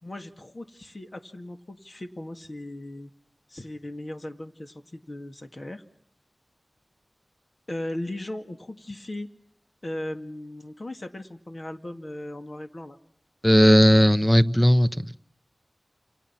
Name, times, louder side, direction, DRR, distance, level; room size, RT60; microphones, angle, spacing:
voice 1, 0.0-3.1 3.5-5.8 7.7-9.3 9.8-13.0, left 1 dB, 45° left, 6 dB, 2.3 m, -37 dB
voice 2, 13.4-15.1, equal, 5° left, 12 dB, 1.1 m, -17 dB
28.5 x 28.5 x 6.0 m, 0.66 s
wide cardioid pair, 55°, 0 cm